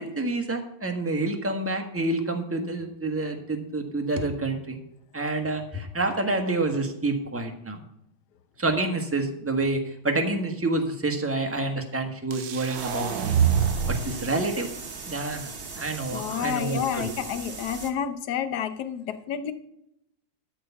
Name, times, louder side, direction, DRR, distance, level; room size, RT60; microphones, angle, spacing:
voice 1, 0.0-4.8 5.1-7.8 8.6-13.4 13.9-14.7 15.1-17.1, right 2 dB, 10° right, 3 dB, 1.0 m, -28 dB
sound 1, 12.3-14.3, right 7 dB, 70° right, 1.4 m, -25 dB
sound 2, 12.8-17.9, right 4 dB, 35° right, 1.1 m, -39 dB
voice 2, 16.1-19.5, left 8 dB, 60° left, 10 dB, 1.3 m, -30 dB
13.0 x 4.7 x 7.0 m, 0.78 s
omnidirectional pair, 2.1 m